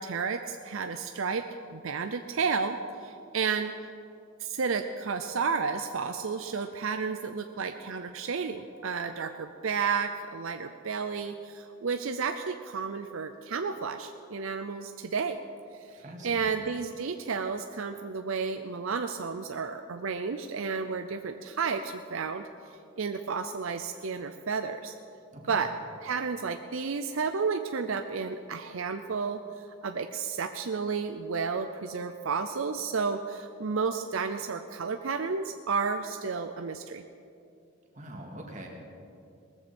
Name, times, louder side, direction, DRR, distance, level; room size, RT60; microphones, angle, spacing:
voice 1, 0.0-1.4 1.7-3.7 4.4-15.4 15.8-22.4 23.0-25.0 25.5-25.7 26.0-37.0, right 5 dB, 75° right, 7 dB, 0.6 m, -32 dB
voice 2, 16.0-16.6 25.3-25.6 37.9-38.7, right 1 dB, 35° right, 0 dB, 2.2 m, -43 dB
19.0 x 14.5 x 4.4 m, 2.5 s
head